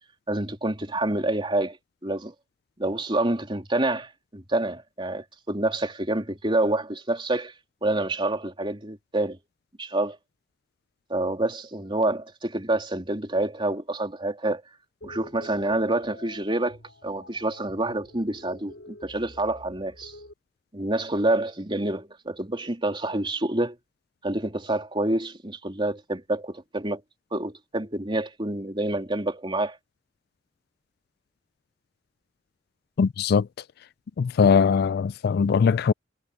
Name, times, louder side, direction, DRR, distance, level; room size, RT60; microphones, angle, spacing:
voice 1, 0.3-1.8 2.0-2.3 2.8-7.5 7.8-9.4 9.8-10.2 11.1-14.6 15.0-20.2 20.7-23.8 24.2-27.0 27.3-29.8, right 2 dB, 25° right, 3.3 m, -27 dB
sound 1, 15.0-20.3, left 1 dB, 80° left, 4.5 m, -47 dB
voice 2, 33.0-33.5 34.2-35.9, left 6 dB, 55° left, 0.3 m, -20 dB
head